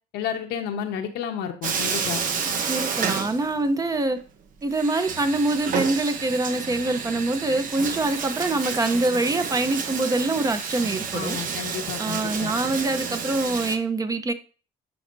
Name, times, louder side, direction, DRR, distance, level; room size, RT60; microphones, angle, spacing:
voice 1, 0.1-2.3 11.1-12.5, left 8 dB, 90° left, 1.1 m, -31 dB
Bathtub (filling or washing), 1.6-3.9 4.2-4.3 4.7-13.8, right 6 dB, 55° right, 1.0 m, -30 dB
voice 2, 2.7-4.2 4.6-11.4 12.0-14.3, right 2 dB, 20° right, 0.7 m, -25 dB
10.5 x 4.2 x 2.7 m
cardioid pair, 110°, 17 cm